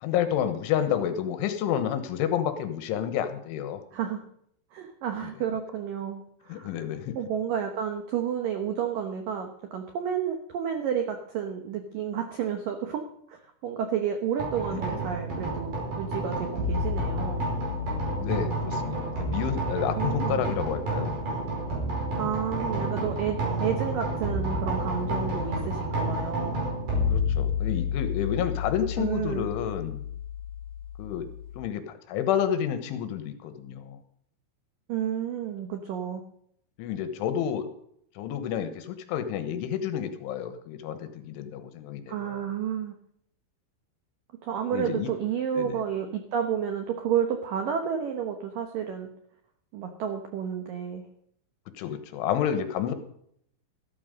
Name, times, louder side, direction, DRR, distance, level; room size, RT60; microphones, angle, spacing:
voice 1, 0.0-3.8 6.5-7.2 14.9-15.0 18.1-21.1 27.1-30.0 31.0-31.3 31.6-34.0 36.8-37.7 38.2-42.2 44.7-45.1 45.6-45.8 51.8-52.9, left 9 dB, 75° left, 9 dB, 3.5 m, -30 dB
voice 2, 3.9-4.2 4.7-6.7 7.2-17.5 19.9-20.4 22.2-26.6 29.0-29.5 34.9-36.2 42.1-42.9 44.4-49.1 49.7-51.1, right 8 dB, 90° right, 5 dB, 1.9 m, -31 dB
sound 1, 14.4-31.6, equal, 45° right, 6.3 m, -30 dB
14.5 x 13.0 x 5.3 m, 0.69 s
omnidirectional pair, 5.8 m